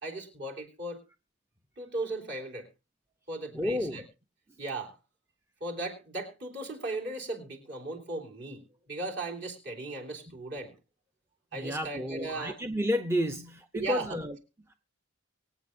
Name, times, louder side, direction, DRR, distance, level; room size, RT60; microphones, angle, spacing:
voice 1, 0.0-1.0 1.8-2.7 3.3-4.0 4.6-5.0 5.6-10.7 11.5-12.6 13.7-14.1, right 2 dB, 55° right, 0 dB, 3.5 m, -37 dB
voice 2, 3.5-4.0 11.5-14.4, left 1 dB, 10° right, 7 dB, 0.5 m, -31 dB
24.0 x 8.5 x 2.6 m, 0.29 s
head